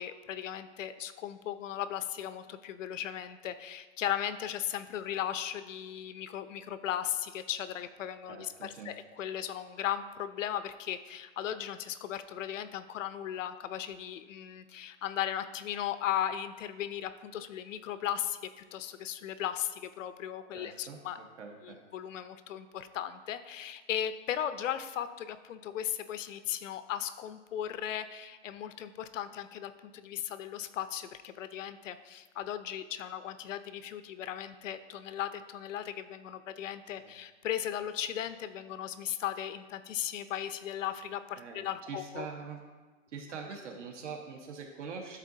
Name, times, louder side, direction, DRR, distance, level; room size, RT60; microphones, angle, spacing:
voice 1, 0.0-21.2 21.6-42.3, left 10 dB, 85° left, 12 dB, 0.6 m, -37 dB
voice 2, 8.3-8.9 20.5-21.8 37.0-37.1 41.4-42.6 43.1-45.2, right 5 dB, 70° right, 2 dB, 1.4 m, -44 dB
11.5 x 3.9 x 2.7 m, 1.3 s
hypercardioid pair, 160°, 37 cm